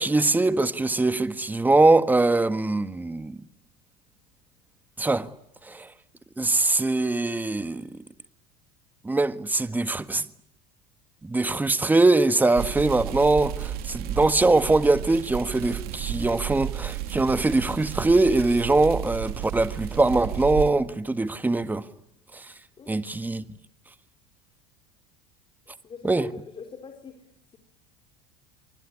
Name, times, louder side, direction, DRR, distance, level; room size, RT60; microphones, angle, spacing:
voice 1, 0.0-3.4 5.0-5.3 5.6-5.9 6.4-7.9 9.0-10.2 11.2-21.9 22.3-22.4 22.9-23.4 26.0-26.3, right 2 dB, 10° right, 1.6 m, -22 dB
sound 1, 12.5-20.7, right 11 dB, 55° right, 2.8 m, -33 dB
voice 2, 22.8-23.1 25.8-27.6, left 5 dB, 25° left, 3.9 m, -43 dB
24.5 x 24.5 x 9.9 m
supercardioid pair, 110°, 19 cm